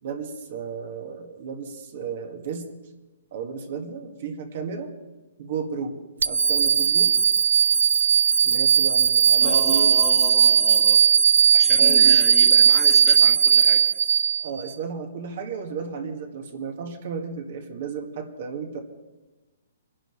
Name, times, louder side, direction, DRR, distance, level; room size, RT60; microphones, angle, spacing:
voice 1, 0.0-2.7 3.3-4.9 5.4-6.0 6.3-7.1 8.4-10.0 11.8-12.2 14.4-18.8, right 5 dB, 50° right, 4 dB, 1.9 m, -33 dB
sound 1, 6.2-14.7, right 7 dB, 90° right, 0.3 m, -18 dB
voice 2, 9.4-11.0 11.5-13.8, left 1 dB, 5° left, 0 dB, 1.6 m, -34 dB
23.5 x 11.0 x 3.2 m, 1.1 s
hypercardioid pair, 165°, 0 cm